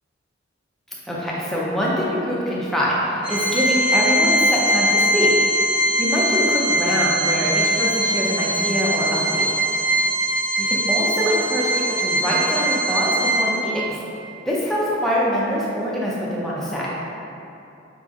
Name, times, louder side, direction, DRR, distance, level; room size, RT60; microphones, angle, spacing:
voice 1, 1.1-5.4 6.0-9.5 10.6-14.0 14.5-16.9, equal, ahead, -7 dB, 0.5 m, -24 dB
Organ, 3.2-13.8, right 1 dB, 65° right, 1.4 m, -21 dB
5.1 x 2.9 x 2.4 m, 2.7 s
head